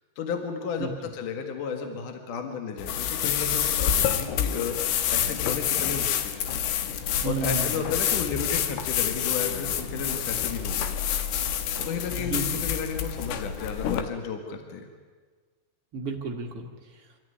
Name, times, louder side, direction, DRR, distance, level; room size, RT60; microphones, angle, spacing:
voice 1, 0.2-6.5 7.2-10.9 11.8-14.9, left 6 dB, 55° left, 4 dB, 2.8 m, -33 dB
voice 2, 0.8-1.1 7.2-7.9 12.2-12.6 15.9-17.1, right 3 dB, 50° right, 1 dB, 1.9 m, -33 dB
sound 1, 2.8-14.0, left 9 dB, 70° left, 2.8 m, -28 dB
26.0 x 14.0 x 9.6 m, 1.5 s
omnidirectional pair, 5.3 m